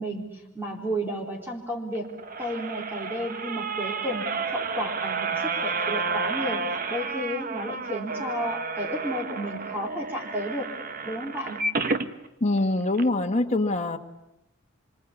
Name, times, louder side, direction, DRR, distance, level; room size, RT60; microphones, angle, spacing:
voice 1, 0.0-10.7 11.0-11.6, equal, 10° right, -1 dB, 3.9 m, -32 dB
sound 1, 1.9-12.1 12.6-12.7 12.9-13.0, right 4 dB, 45° right, 1.3 m, -31 dB
voice 2, 12.4-14.0, left 2 dB, 35° left, 5 dB, 1.6 m, -24 dB
27.0 x 25.0 x 8.5 m, 0.89 s
head